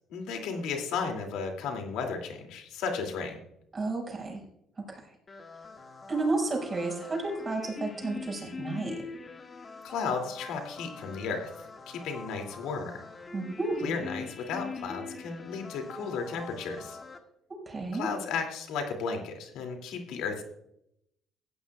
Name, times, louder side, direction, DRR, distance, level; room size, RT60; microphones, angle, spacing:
voice 1, 0.1-3.4 9.8-11.5 11.9-13.0 13.8-17.0 17.9-20.4, left 5 dB, 85° left, 3 dB, 2.7 m, -34 dB
voice 2, 3.7-4.4 4.9-5.1 6.1-9.0 13.3-14.0 17.5-18.1, right 3 dB, 30° right, 0 dB, 5.9 m, -32 dB
sound 1, 5.3-17.2, left 4 dB, 35° left, 1.9 m, -43 dB
17.0 x 15.0 x 2.4 m, 0.77 s
cardioid pair, 90°, 0 cm